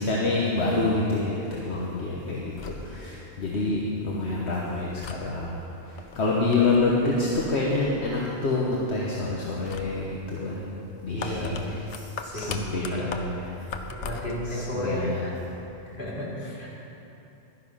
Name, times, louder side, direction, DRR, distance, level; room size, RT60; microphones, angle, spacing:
voice 1, 0.0-10.7 11.0-12.0 12.3-13.7 14.3-15.3, left 2 dB, 70° left, -3 dB, 1.4 m, -27 dB
sound 1, 2.4-14.5, left 4 dB, 85° left, 1.1 m, -42 dB
voice 2, 11.1-11.7 12.2-13.6 13.9-15.4 15.8-16.7, left 1 dB, 50° left, -7 dB, 2.9 m, -33 dB
12.0 x 9.8 x 5.6 m, 3.0 s
omnidirectional pair, 1.2 m